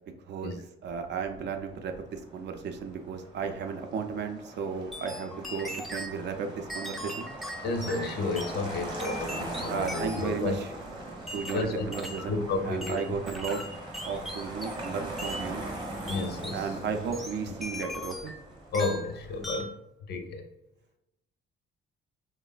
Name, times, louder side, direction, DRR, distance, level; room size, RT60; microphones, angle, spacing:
voice 1, 0.3-7.3 9.7-10.7 11.3-13.6 14.0-15.7 16.5-18.3, right 5 dB, 60° right, 6 dB, 0.4 m, -34 dB
Motor vehicle (road), 0.9-19.6, right 2 dB, 25° right, 0.8 m, -41 dB
sound 1, 4.9-6.2 6.7-8.6 9.0-10.4 11.3-12.3 12.8-14.9 15.2-15.5 16.1-16.7 17.1-18.4 18.7-19.1 19.4-19.8, equal, ahead, 0.4 m, -39 dB
voice 2, 7.6-10.6 11.5-11.8 12.3-13.2 16.1-16.7 18.7-19.8 20.1-20.4, left 3 dB, 55° left, 5 dB, 0.5 m, -31 dB
3.1 x 2.0 x 2.3 m, 0.93 s
cardioid pair, 90°, 20 cm